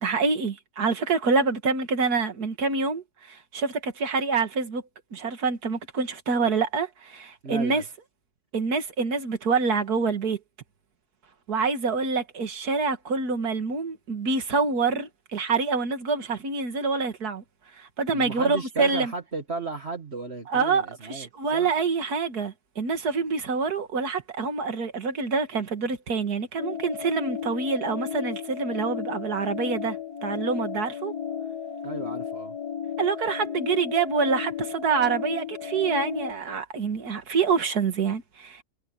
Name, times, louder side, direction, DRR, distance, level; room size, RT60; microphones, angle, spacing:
voice 1, 0.0-4.8 5.1-7.8 8.5-10.4 11.5-17.4 17.7-19.1 20.5-31.1 33.0-38.6, right 4 dB, 70° right, 2.4 m, -26 dB
voice 2, 7.4-7.9 18.1-21.7 31.8-32.6, right 3 dB, 40° right, 2.0 m, -35 dB
sound 1, 26.6-36.3, left 8 dB, 75° left, 2.5 m, -34 dB
omnidirectional pair, 1.7 m